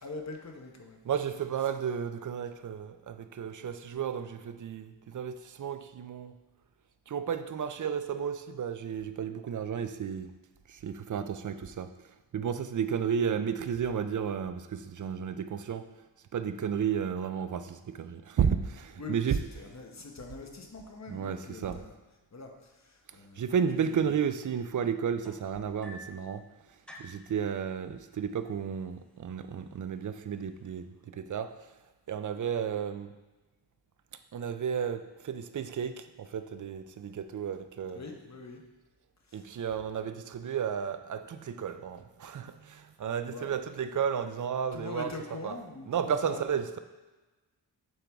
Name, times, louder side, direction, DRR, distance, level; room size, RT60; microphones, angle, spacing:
voice 1, 0.0-1.0 19.0-22.0 22.3-23.4 24.0-24.1 37.9-38.6 39.3-39.5 43.3-43.5 44.7-46.4, left 3 dB, 40° left, 0.9 m, -43 dB
voice 2, 1.0-6.4 7.1-10.3 10.7-11.9 12.3-15.9 16.3-19.4 21.1-21.8 23.4-26.5 27.0-31.6 32.1-33.1 34.3-38.0 39.3-45.2 45.4-45.6 45.9-46.8, right 7 dB, 45° right, 0.4 m, -33 dB
sound 1, 25.2-26.3 26.9-27.3 28.3-28.4 28.8-29.2 29.9-30.0, left 1 dB, ahead, 0.6 m, -49 dB
7.7 x 4.5 x 3.5 m
wide cardioid pair, 90°, 44 cm